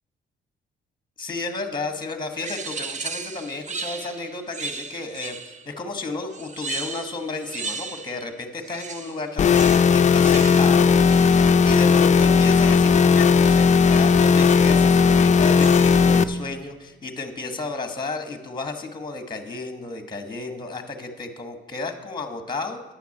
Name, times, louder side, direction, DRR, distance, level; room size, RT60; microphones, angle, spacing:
voice 1, 1.2-22.9, left 3 dB, 20° left, 7 dB, 1.2 m, -33 dB
sound 1, 2.4-5.7 6.3-8.3 8.6-12.4 13.5-13.8 14.5-14.9 15.4-16.2, right 4 dB, 35° right, 0.7 m, -36 dB
sound 2, 9.4-16.2, left 5 dB, 35° left, 0.4 m, -16 dB
10.0 x 5.9 x 8.3 m, 1.1 s
cardioid pair, 90°, 20 cm